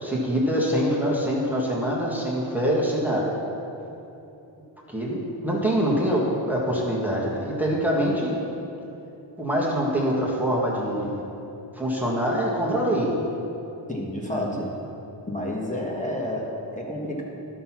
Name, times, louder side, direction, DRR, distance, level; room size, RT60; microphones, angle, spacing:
voice 1, 0.0-3.3 4.9-8.4 9.4-11.2 11.7-13.1 14.3-14.6, equal, 5° right, -5 dB, 1.7 m, -24 dB
voice 2, 13.9-14.7 15.3-17.2, left 1 dB, 15° left, -3 dB, 1.5 m, -30 dB
12.0 x 5.9 x 6.0 m, 2.9 s
wide cardioid pair, 130°, 47 cm